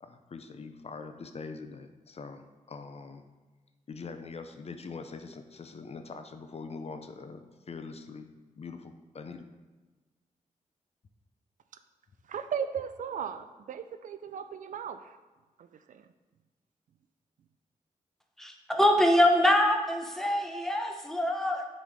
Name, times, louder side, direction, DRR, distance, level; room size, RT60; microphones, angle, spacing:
voice 1, 0.0-3.2 3.9-8.3 8.6-9.5, left 4 dB, 50° left, 8 dB, 0.5 m, -43 dB
voice 2, 12.3-15.2 15.6-16.1, right 7 dB, 75° right, 10 dB, 0.4 m, -37 dB
voice 3, 18.4-21.7, left 1 dB, 5° left, 3 dB, 1.0 m, -24 dB
6.2 x 4.1 x 4.7 m, 1.3 s
cardioid pair, 65°, 14 cm